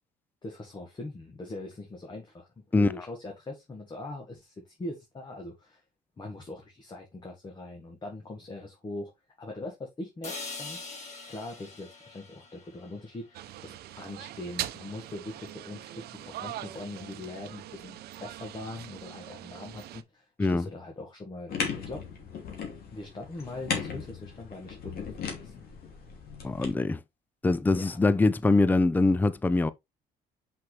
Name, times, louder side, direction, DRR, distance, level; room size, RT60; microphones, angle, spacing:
voice 1, 0.4-5.8 6.2-9.1 9.4-10.8 11.3-22.0 22.9-25.5 27.7-28.0, left 2 dB, 25° left, 1.8 m, -41 dB
sound 1, 10.2-14.3, left 3 dB, 45° left, 3.5 m, -44 dB
sound 2, 13.3-20.0, right 13 dB, 70° right, 0.7 m, -41 dB
sound 3, 21.5-26.7, left 6 dB, 65° left, 2.9 m, -37 dB
voice 2, 26.4-27.0 27.4-29.7, left 3 dB, 10° left, 0.5 m, -23 dB
6.0 x 5.8 x 3.4 m
cardioid pair, 110°, 17 cm